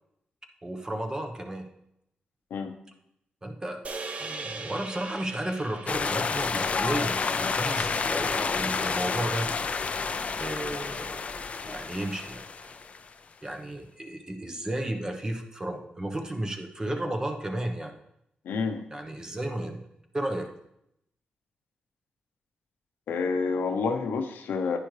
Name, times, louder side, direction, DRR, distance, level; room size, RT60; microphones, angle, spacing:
voice 1, 0.6-1.7 3.4-3.8 4.2-9.5 10.4-11.3 11.6-12.7 13.4-17.9 18.9-19.8 20.1-20.5, right 1 dB, 20° right, 4 dB, 1.1 m, -33 dB
sound 1, 3.8-8.3, right 3 dB, 45° right, 0.9 m, -41 dB
sound 2, 5.9-13.1, left 4 dB, 45° left, 0.5 m, -29 dB
voice 2, 18.4-18.8 23.1-24.8, left 4 dB, 85° left, 6 dB, 0.9 m, -28 dB
9.9 x 9.9 x 3.3 m, 0.80 s
cardioid pair, 90°, 3 cm